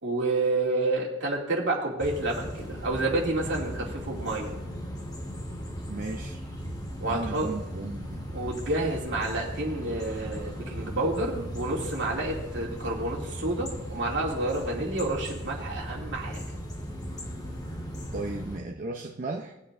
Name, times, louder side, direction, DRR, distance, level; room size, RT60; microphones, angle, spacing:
voice 1, 0.0-4.5 7.0-7.5 8.3-16.5, right 2 dB, 65° right, -2 dB, 2.6 m, -29 dB
sound 1, 2.0-18.6, equal, 20° left, 1.5 m, -37 dB
voice 2, 5.9-6.4 7.0-8.2 18.1-19.5, right 2 dB, 45° right, 1 dB, 0.7 m, -35 dB
19.0 x 8.3 x 2.6 m, 0.97 s
head